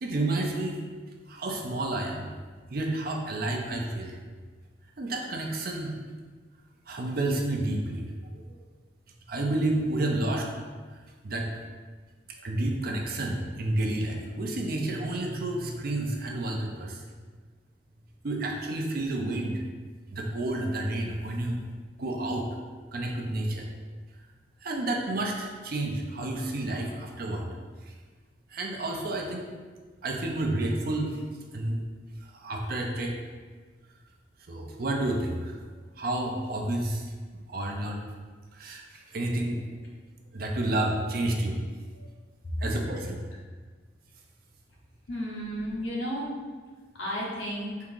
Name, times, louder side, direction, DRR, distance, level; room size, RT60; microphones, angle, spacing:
voice 1, 0.0-0.8 1.3-2.3 2.7-4.2 5.0-6.0 6.9-8.6 9.3-10.5 11.2-11.5 12.3-17.0 18.2-19.6 20.1-21.6 22.0-22.5 22.9-23.6 24.6-27.5 27.8-27.9 28.5-29.5 30.0-31.2 31.5-31.8 32.2-33.2 34.5-35.6 36.0-37.1 37.5-38.0 38.5-39.6 40.3-41.6 42.0-42.1 42.6-43.2, right 2 dB, 50° right, 1 dB, 0.5 m, -30 dB
voice 2, 45.1-46.4 46.9-47.7, equal, 75° left, -4 dB, 1.0 m, -33 dB
3.6 x 2.8 x 3.7 m, 1.5 s
head